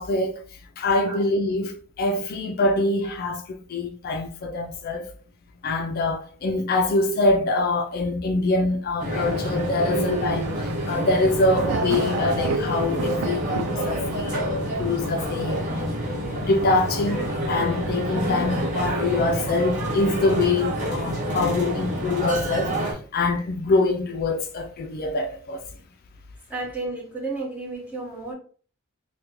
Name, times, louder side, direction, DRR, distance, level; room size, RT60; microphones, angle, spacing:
voice 1, 0.0-5.1 5.6-14.5 14.8-15.8 16.3-25.6, left 2 dB, 40° left, 0.3 m, -24 dB
sound 1, 9.0-22.9, equal, 35° right, 1.0 m, -27 dB
Thunder, 9.5-15.9, right 4 dB, 55° right, 0.4 m, -35 dB
voice 2, 26.5-28.3, right 3 dB, 5° right, 1.0 m, -32 dB
3.7 x 2.2 x 2.9 m
head